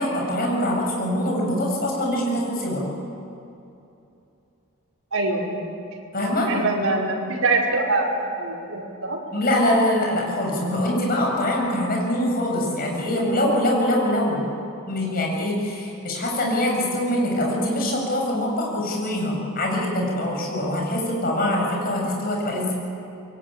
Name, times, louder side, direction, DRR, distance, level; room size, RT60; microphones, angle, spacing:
voice 1, 0.0-2.8 6.1-6.5 9.3-14.4 14.9-22.7, left 1 dB, 45° left, -1 dB, 7.4 m, -23 dB
voice 2, 5.1-5.4 6.5-9.2, right 2 dB, 85° right, -2 dB, 5.3 m, -24 dB
25.5 x 22.5 x 9.0 m, 2.8 s
head